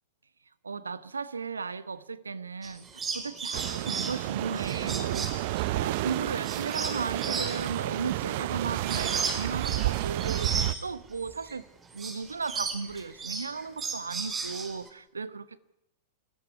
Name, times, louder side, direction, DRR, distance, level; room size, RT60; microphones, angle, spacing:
voice 1, 0.6-11.6 11.9-15.6, right 5 dB, 80° right, 17 dB, 1.0 m, -36 dB
rainbow lorikeet, 2.6-11.6 11.9-14.9, right 4 dB, 20° right, 4.6 m, -36 dB
sound 1, 3.5-10.7, right 17 dB, 50° right, 0.8 m, -31 dB
29.5 x 14.0 x 9.7 m, 0.87 s
figure-of-eight pair, 95°, 0 cm